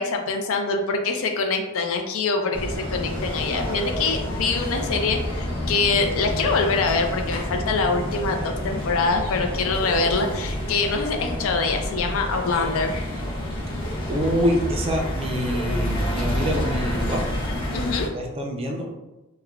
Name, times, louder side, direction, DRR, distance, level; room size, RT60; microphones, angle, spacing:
voice 1, 0.0-13.1 17.7-18.1, left 4 dB, 65° left, 4 dB, 0.4 m, -24 dB
sound 1, 2.5-18.1, left 1 dB, 25° left, 0.7 m, -29 dB
voice 2, 14.1-17.3 18.1-18.9, equal, 25° right, 1 dB, 0.4 m, -25 dB
3.5 x 2.1 x 2.2 m, 1.0 s
head